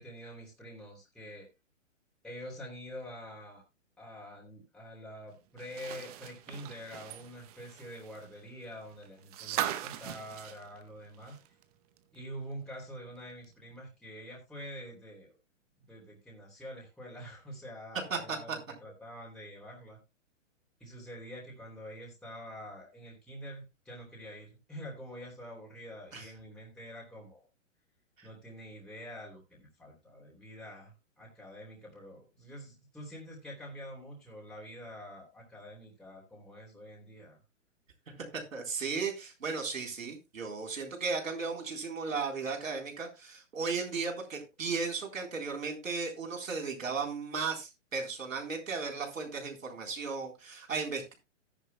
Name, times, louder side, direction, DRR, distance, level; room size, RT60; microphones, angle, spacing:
voice 1, 0.0-1.5 2.2-3.6 4.0-11.4 12.1-15.4 15.9-20.0 20.8-27.4 28.2-37.4, equal, ahead, -4 dB, 2.9 m, -46 dB
sound 1, 5.6-11.6 12.0-12.1 13.4-13.5, right 12 dB, 30° right, 0.8 m, -40 dB
voice 2, 17.9-18.4 26.1-26.3 28.2-28.3 38.5-51.1, right 4 dB, 90° right, 2 dB, 4.0 m, -35 dB
14.0 x 10.0 x 2.2 m, 0.24 s
hypercardioid pair, 140°, 38 cm